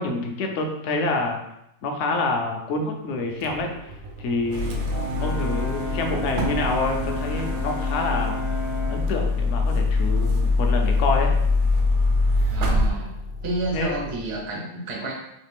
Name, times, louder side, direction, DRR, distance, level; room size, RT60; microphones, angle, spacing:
voice 1, 0.0-1.4 1.8-3.7 4.2-4.8 5.2-8.4 8.9-11.3 13.7-14.0, left 3 dB, 65° left, 2 dB, 0.9 m, -27 dB
Motor vehicle (road), 3.3-14.5, left 1 dB, 85° right, 1.1 m, -36 dB
sound 1, 4.5-12.9, left 3 dB, 65° right, 0.8 m, -24 dB
Brass instrument, 4.9-9.1, left 1 dB, 30° left, 0.3 m, -33 dB
voice 2, 12.5-13.1 13.4-15.1, right 2 dB, 35° right, -1 dB, 0.5 m, -30 dB
3.3 x 2.8 x 3.3 m, 0.80 s
omnidirectional pair, 1.5 m